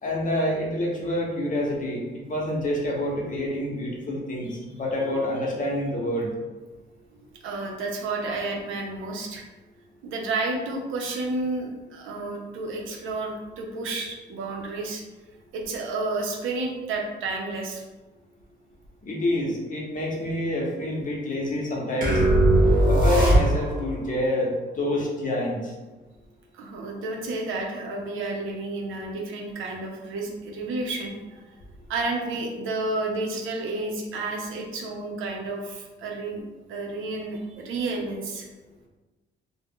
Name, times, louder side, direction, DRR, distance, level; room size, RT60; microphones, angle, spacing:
voice 1, 0.0-6.3 19.0-22.2 22.9-25.7, left 1 dB, 40° left, -2 dB, 0.8 m, -27 dB
voice 2, 7.4-9.4 10.0-15.0 15.5-17.8 26.5-31.4 31.9-36.4 36.7-38.5, right 2 dB, 80° right, 1 dB, 0.6 m, -31 dB
sound 1, 22.0-23.9, right 1 dB, 45° right, 0.8 m, -19 dB
2.4 x 2.1 x 3.5 m, 1.2 s
cardioid pair, 90°, 20 cm